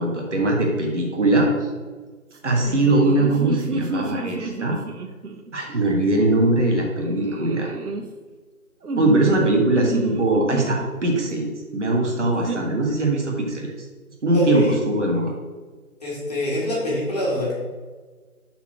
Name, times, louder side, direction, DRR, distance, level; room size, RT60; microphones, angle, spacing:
voice 1, 0.0-1.7 2.4-4.8 5.5-7.7 9.0-13.7 14.2-15.3, right 2 dB, 50° right, 0 dB, 1.6 m, -21 dB
sound 1, 2.5-5.5 7.0-8.0 8.8-10.9 12.3-12.6, right 3 dB, 80° right, 1.1 m, -31 dB
voice 2, 14.3-14.8 16.0-17.5, left 1 dB, 25° left, -6 dB, 2.0 m, -25 dB
5.6 x 4.4 x 6.0 m, 1.4 s
figure-of-eight pair, 170°, 44 cm